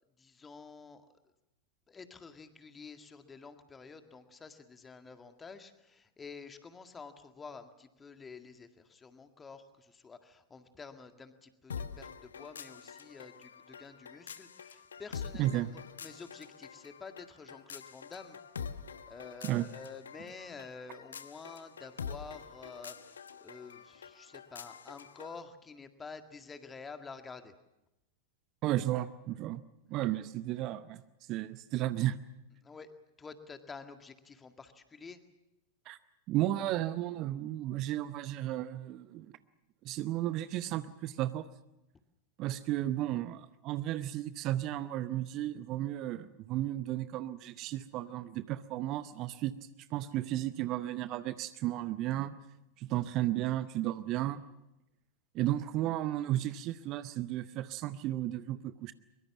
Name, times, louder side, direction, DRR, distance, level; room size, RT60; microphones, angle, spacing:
voice 1, 0.2-1.1 1.9-18.4 19.1-27.5 32.6-35.2, left 4 dB, 15° left, 8 dB, 1.9 m, -49 dB
sound 1, 11.7-25.4, left 6 dB, 70° left, 1.0 m, -46 dB
voice 2, 15.4-15.7 19.4-19.7 28.6-29.6 29.9-31.0 31.3-32.2 35.9-36.0 36.3-39.4 39.8-41.5 42.4-49.6 49.9-52.4 52.8-54.4 55.3-58.9, right 14 dB, 40° right, 14 dB, 0.8 m, -33 dB
23.0 x 22.5 x 7.2 m, 0.91 s
figure-of-eight pair, 90°, 0 cm